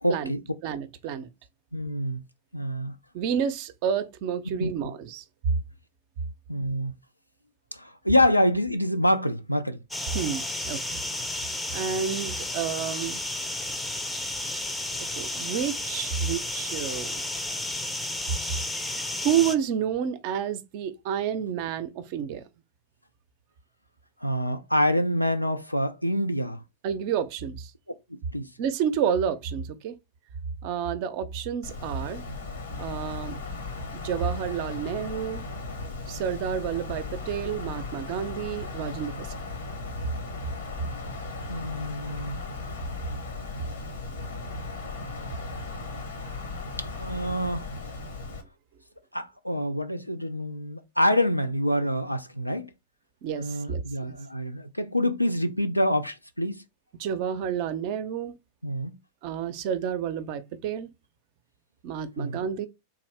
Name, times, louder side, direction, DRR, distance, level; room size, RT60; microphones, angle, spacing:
voice 1, 0.0-0.4 1.7-2.2 2.5-2.9 4.5-4.9 6.5-6.9 7.7-9.8 24.2-26.6 28.1-28.5 41.5-42.4 46.8-47.7 49.1-52.7 53.3-56.6 58.6-59.0 62.2-62.4, equal, 90° left, 0.4 m, -26 dB
voice 2, 0.6-1.3 3.1-5.2 10.1-11.0 11.7-13.2 15.0-17.2 19.2-22.4 26.8-27.7 28.6-30.0 30.6-32.2 32.8-33.4 33.9-35.5 36.1-39.5 53.2-54.2 57.0-58.4 59.2-60.9 61.8-62.7, right 8 dB, 45° right, 0.5 m, -30 dB
sound 1, 9.9-19.6, left 1 dB, 10° left, 0.5 m, -32 dB
Wind, 31.6-48.4, left 3 dB, 65° left, 0.9 m, -37 dB
3.6 x 2.6 x 3.3 m
figure-of-eight pair, 90°, 0 cm